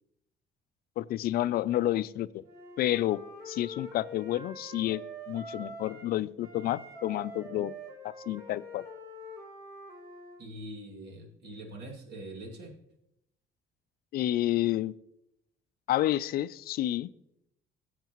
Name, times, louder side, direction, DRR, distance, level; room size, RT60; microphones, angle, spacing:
voice 1, 1.0-2.4 2.8-3.2 3.5-7.8 8.0-8.8 14.1-14.9 15.9-17.1, left 14 dB, 60° left, 16 dB, 0.4 m, -30 dB
Wind instrument woodwind instrument, 2.4-6.1 6.4-10.4, equal, 20° right, 4.4 m, -45 dB
voice 2, 10.4-12.7, right 1 dB, 75° right, 1 dB, 2.4 m, -43 dB
16.5 x 8.1 x 3.0 m, 0.79 s
cardioid pair, 135°, 18 cm